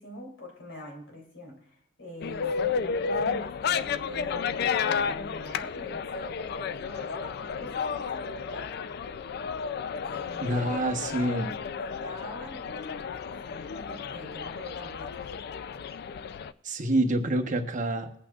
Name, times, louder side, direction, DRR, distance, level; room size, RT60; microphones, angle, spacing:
voice 1, 0.0-8.8 10.0-10.9 11.6-15.2, left 1 dB, 75° left, 1 dB, 3.0 m, -43 dB
sound 1, 2.2-16.5, left 6 dB, 55° left, 0.4 m, -32 dB
voice 2, 10.4-11.5 16.6-18.1, right 1 dB, 40° right, 5 dB, 1.0 m, -27 dB
21.0 x 8.6 x 2.4 m, 0.68 s
head